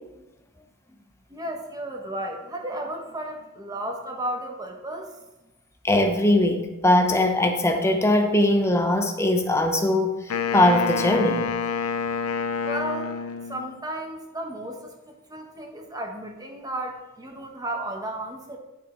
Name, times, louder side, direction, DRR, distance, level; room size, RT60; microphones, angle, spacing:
voice 1, 1.3-5.2 12.6-18.6, right 1 dB, 15° right, 2 dB, 1.1 m, -34 dB
voice 2, 5.8-11.5, left 1 dB, 10° left, 5 dB, 0.8 m, -21 dB
Wind instrument woodwind instrument, 10.3-13.8, left 6 dB, 75° left, 0.6 m, -28 dB
10.5 x 5.4 x 4.4 m, 1.0 s
head